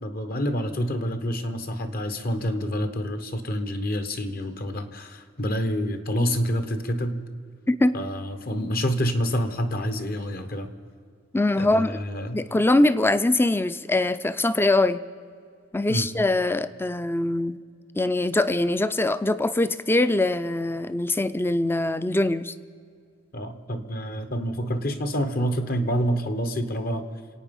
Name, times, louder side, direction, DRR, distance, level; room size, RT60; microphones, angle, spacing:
voice 1, 0.0-7.2 7.9-10.7 11.6-12.4 15.9-16.1 23.3-27.1, equal, 50° left, 8 dB, 1.3 m, -27 dB
voice 2, 11.3-12.0 12.3-15.0 15.7-17.6 18.0-22.5, left 2 dB, 10° left, 14 dB, 0.5 m, -22 dB
26.5 x 9.0 x 5.4 m, 2.2 s
head